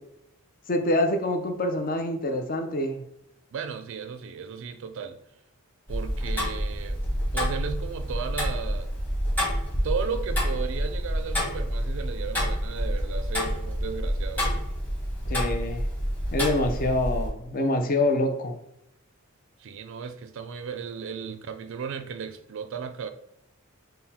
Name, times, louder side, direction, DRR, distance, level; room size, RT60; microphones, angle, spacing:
voice 1, 0.7-3.0 15.3-15.8 16.3-18.5, left 1 dB, 40° left, 0.5 m, -26 dB
voice 2, 3.5-5.2 5.9-7.0 7.3-8.9 9.8-14.7 19.6-23.1, right 6 dB, 60° right, 0.3 m, -35 dB
Tick-tock, 5.9-17.3, equal, 10° left, 1.0 m, -28 dB
3.8 x 2.1 x 4.1 m
head